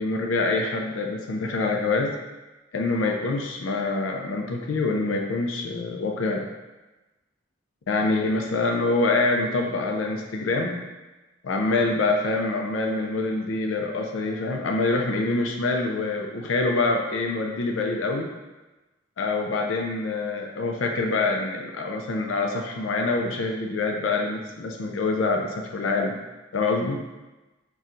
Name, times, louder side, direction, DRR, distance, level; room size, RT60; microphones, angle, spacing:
voice 1, 0.0-2.2 2.7-6.4 7.9-10.8 11.4-18.3 19.2-26.2 26.5-27.0, left 3 dB, 85° left, 1 dB, 0.4 m, -25 dB
3.7 x 2.3 x 4.2 m, 1.1 s
head